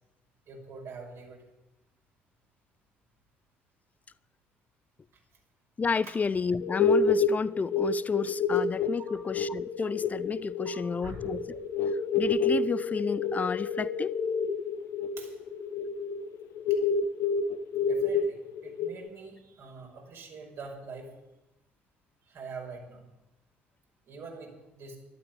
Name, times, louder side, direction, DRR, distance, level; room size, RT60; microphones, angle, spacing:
voice 1, 0.5-1.4 6.0-6.1 9.1-9.3 10.6-11.2 15.2-15.3 17.8-18.4 18.6-21.1 22.3-23.0 24.1-25.0, right 4 dB, 50° right, 5.5 m, -44 dB
voice 2, 5.8-11.6 12.2-14.1, left 5 dB, 25° left, 0.6 m, -31 dB
sound 1, 6.6-19.1, left 5 dB, 55° left, 0.9 m, -29 dB
12.5 x 12.5 x 8.5 m
figure-of-eight pair, 50°, 6 cm